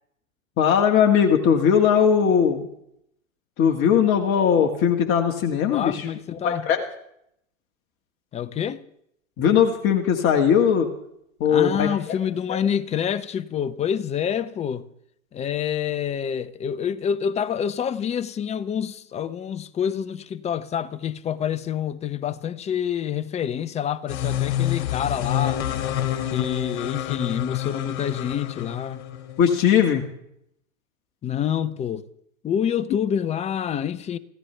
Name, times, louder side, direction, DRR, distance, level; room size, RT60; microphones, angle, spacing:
voice 1, 0.6-2.7 3.6-6.1 6.3-6.8 9.4-10.9 11.4-12.2 12.5-12.6 29.4-30.0, left 8 dB, 30° left, 1.8 m, -19 dB
voice 2, 5.7-6.6 8.3-8.8 11.4-14.8 15.3-25.6 26.2-29.0 31.2-32.0 32.4-34.2, left 8 dB, 15° left, 0.6 m, -27 dB
sound 1, 24.1-29.4, left 11 dB, 55° left, 2.5 m, -28 dB
26.5 x 15.0 x 3.3 m
hypercardioid pair, 110°, 40 cm